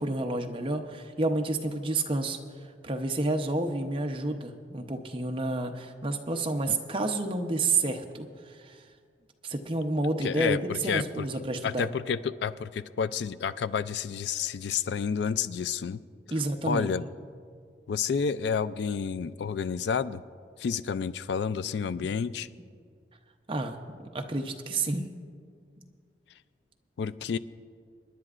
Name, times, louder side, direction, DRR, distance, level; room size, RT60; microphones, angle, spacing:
voice 1, 0.0-2.4 2.8-8.8 9.4-11.9 16.3-16.9 23.5-23.8 24.1-25.1, right 2 dB, 30° right, 4 dB, 0.7 m, -30 dB
voice 2, 10.2-11.3 11.6-16.0 16.6-17.0 17.9-20.2 20.6-22.5 27.0-27.4, left 6 dB, 70° left, 15 dB, 0.3 m, -30 dB
27.0 x 10.5 x 2.5 m, 2.1 s
head